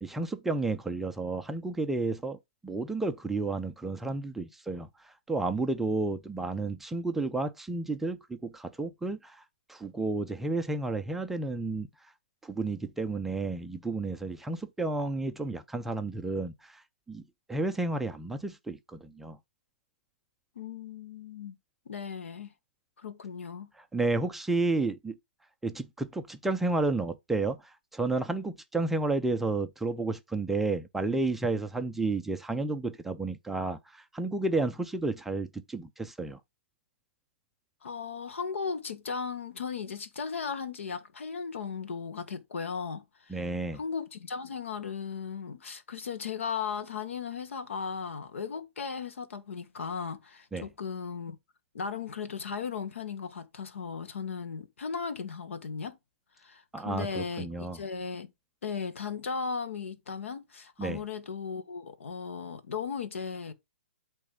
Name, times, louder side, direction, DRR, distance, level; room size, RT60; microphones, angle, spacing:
voice 1, 0.0-2.4 2.6-9.4 9.7-11.9 12.4-16.8 17.1-17.2 17.5-19.4 23.9-25.2 25.6-36.4 43.3-43.8 50.5-50.7 56.7-57.8 60.8-61.0, right 2 dB, 5° right, 0.3 m, -31 dB
voice 2, 20.5-21.6 21.8-22.5 23.0-23.7 37.8-43.4 43.7-51.4 51.7-56.0 56.4-58.3 58.6-63.5, left 5 dB, 75° left, 1.5 m, -36 dB
8.6 x 3.2 x 5.2 m
hypercardioid pair, 160°, 7 cm